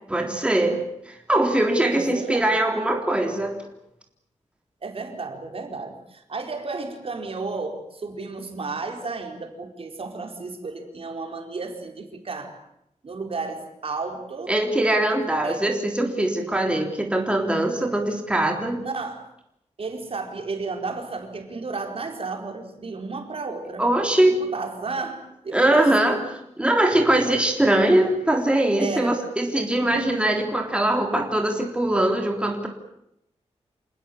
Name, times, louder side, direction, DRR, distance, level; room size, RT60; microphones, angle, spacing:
voice 1, 0.1-0.8 1.1-3.6 14.5-18.8 23.8-24.3 25.5-26.2 26.6-32.7, right 1 dB, 10° right, 2 dB, 3.7 m, -21 dB
voice 2, 1.9-2.5 4.8-12.6 13.0-14.5 15.4-15.8 18.8-19.2 19.8-23.8 24.4-26.2 28.8-29.2, right 4 dB, 55° right, 4 dB, 4.6 m, -33 dB
28.0 x 19.0 x 8.7 m, 0.80 s
wide cardioid pair, 115°, 12 cm